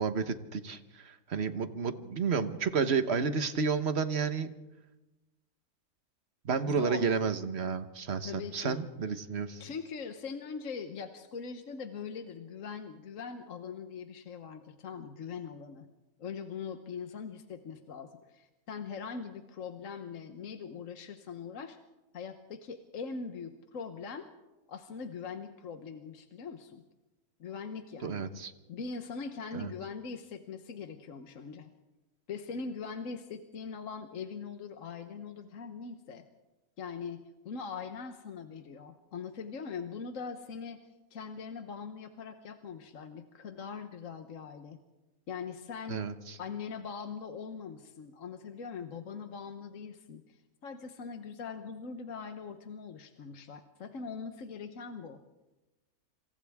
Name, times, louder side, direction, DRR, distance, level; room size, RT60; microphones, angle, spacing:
voice 1, 0.0-4.5 6.4-9.6 28.0-28.5 29.5-29.7 45.9-46.4, right 5 dB, 50° right, 10 dB, 1.4 m, -31 dB
voice 2, 6.6-7.1 8.2-8.8 9.6-15.9 16.2-21.8 22.1-24.3 24.7-26.8 27.4-28.3 28.7-31.7 32.3-36.2 36.8-40.8 41.1-44.8 45.3-46.1 46.4-55.2, left 5 dB, 65° left, 7 dB, 1.4 m, -41 dB
27.0 x 27.0 x 3.6 m, 1.1 s
omnidirectional pair, 1.5 m